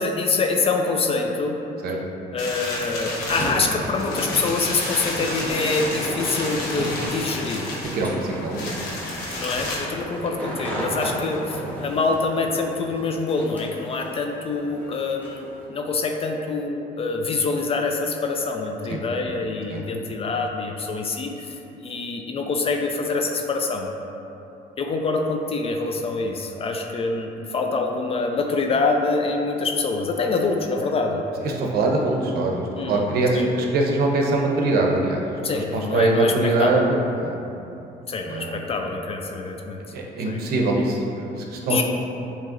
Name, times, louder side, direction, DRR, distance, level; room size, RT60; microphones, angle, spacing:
voice 1, 0.0-1.6 2.3-7.7 9.4-21.6 21.8-23.9 24.8-31.3 32.8-33.0 33.3-33.5 35.4-36.9 38.1-39.8 40.3-40.4 41.7-41.8, left 3 dB, 35° left, 3 dB, 0.4 m, -25 dB
sound 1, 2.4-9.8, left 2 dB, 85° left, 1.0 m, -31 dB
sound 2, 3.4-15.7, right 1 dB, 10° left, 0.9 m, -34 dB
voice 2, 7.9-8.9 11.2-11.3 11.5-11.6 18.9-19.0 19.7-19.8 31.4-35.2 35.5-37.4 38.3-38.6 39.9-41.8, right 2 dB, 65° right, 0 dB, 0.7 m, -23 dB
7.3 x 2.9 x 2.5 m, 2.9 s
cardioid pair, 110°, 17 cm